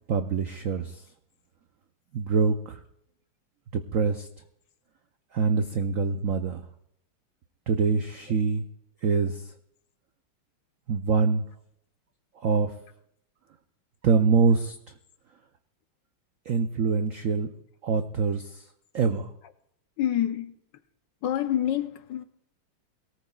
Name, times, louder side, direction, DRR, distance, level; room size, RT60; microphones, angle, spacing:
voice 1, 0.1-1.0 2.1-2.8 3.7-4.3 5.3-6.6 7.7-8.6 9.0-9.4 10.9-11.4 12.4-12.7 14.0-14.7 16.5-17.5 17.8-18.6 18.9-19.3, right 5 dB, 90° right, 0.7 m, -24 dB
voice 2, 20.0-20.6 21.2-22.2, left 11 dB, 70° left, 1.3 m, -27 dB
22.5 x 18.0 x 2.3 m
omnidirectional pair, 2.2 m